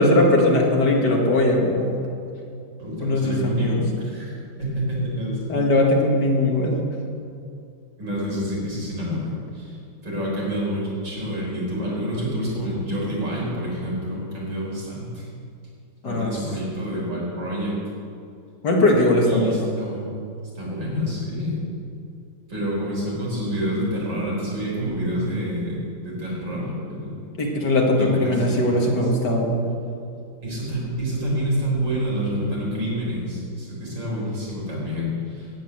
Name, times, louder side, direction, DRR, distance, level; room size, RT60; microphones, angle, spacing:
voice 1, 0.0-2.0 3.0-3.8 5.5-6.8 16.0-16.3 18.6-19.7 27.4-29.6, left 1 dB, 65° left, 0 dB, 2.3 m, -19 dB
voice 2, 2.8-5.6 8.0-9.8 10.0-15.3 16.0-17.8 19.2-20.1 20.5-21.6 22.5-27.2 27.9-29.0 30.4-35.5, equal, 80° right, -5 dB, 5.0 m, -28 dB
10.5 x 8.6 x 9.2 m, 2.5 s
omnidirectional pair, 2.0 m